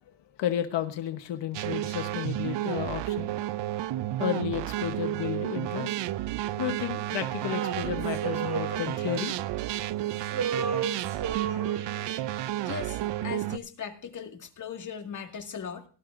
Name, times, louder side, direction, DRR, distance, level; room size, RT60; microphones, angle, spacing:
voice 1, 0.4-3.3 4.2-6.0 6.6-9.3, left 10 dB, 90° left, 7 dB, 1.1 m, -32 dB
sound 1, 1.5-13.6, right 14 dB, 90° right, 0.6 m, -31 dB
Male singing, 7.5-9.9 10.2-12.4, right 7 dB, 65° right, 3.8 m, -34 dB
voice 2, 12.6-15.9, left 7 dB, 45° left, 4 dB, 2.0 m, -38 dB
18.0 x 12.0 x 2.5 m, 0.40 s
wide cardioid pair, 135°, 41 cm